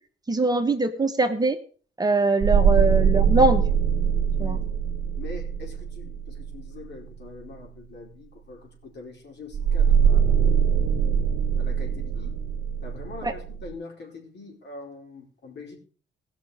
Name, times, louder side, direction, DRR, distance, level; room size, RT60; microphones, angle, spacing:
voice 1, 0.3-1.6 2.0-3.6 4.4-4.6 13.2-13.3, right 2 dB, 20° right, 5 dB, 1.3 m, -22 dB
sound 1, 2.4-6.8 9.5-13.7, right 7 dB, 50° right, 1.2 m, -22 dB
voice 2, 5.2-10.7 11.6-12.4 12.8-15.8, left 3 dB, 60° left, 0 dB, 4.7 m, -43 dB
18.0 x 6.3 x 5.0 m, 0.41 s
cardioid pair, 90°, 20 cm